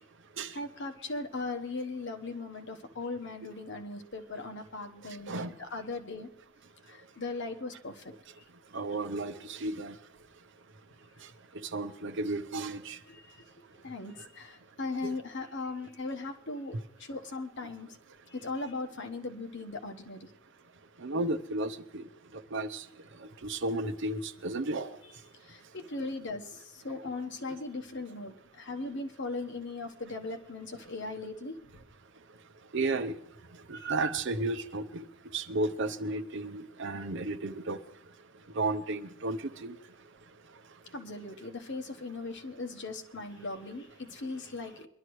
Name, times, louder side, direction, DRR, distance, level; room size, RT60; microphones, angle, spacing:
voice 1, 0.5-5.3 5.6-6.3 6.8-8.1 13.1-13.4 13.8-17.9 18.3-20.3 25.4-31.6 33.7-33.9 40.9-44.9, left 3 dB, 55° left, 6 dB, 1.2 m, -38 dB
voice 2, 8.7-10.0 11.6-13.0 15.0-15.1 21.0-22.1 22.5-22.8 23.2-25.0 32.7-33.1 33.7-35.0 35.3-37.8 38.5-39.8, right 2 dB, 55° right, 10 dB, 0.7 m, -33 dB
22.5 x 12.0 x 3.2 m, 0.78 s
head